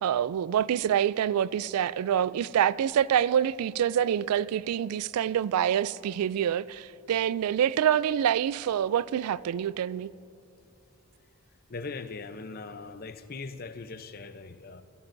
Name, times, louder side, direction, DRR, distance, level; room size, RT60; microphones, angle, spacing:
voice 1, 0.0-10.1, right 9 dB, 90° right, 0.3 m, -26 dB
voice 2, 11.7-14.8, left 4 dB, 40° left, 0.6 m, -40 dB
26.5 x 15.0 x 2.6 m
head